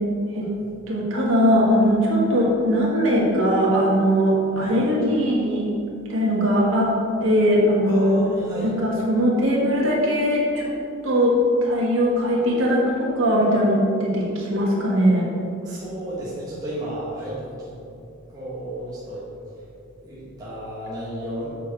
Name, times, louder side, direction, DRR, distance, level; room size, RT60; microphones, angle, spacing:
voice 1, 0.9-5.7 6.1-6.9 7.2-8.2 8.6-10.7 11.0-15.3, equal, 70° right, -4 dB, 1.7 m, -20 dB
voice 2, 7.8-8.7 15.6-17.8 18.3-19.3 20.0-21.5, right 1 dB, 20° right, -9 dB, 1.4 m, -33 dB
7.6 x 5.1 x 4.7 m, 2.6 s
head